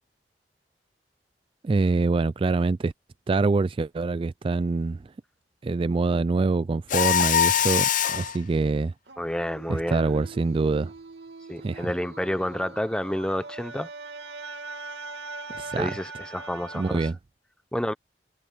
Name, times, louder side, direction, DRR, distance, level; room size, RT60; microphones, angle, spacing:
voice 1, 1.6-2.9 3.3-5.1 5.6-8.9 9.7-10.9 11.6-11.9 15.5-15.9 16.7-17.2, right 3 dB, 30° right, 0.3 m, -25 dB
Mechanisms, 6.9-8.4, left 9 dB, 50° left, 0.7 m, -22 dB
sound 1, 9.1-17.1, right 3 dB, 75° right, 2.6 m, -41 dB
voice 2, 9.2-10.0 11.5-13.9 15.8-17.1 17.7-17.9, equal, 5° left, 0.7 m, -29 dB
head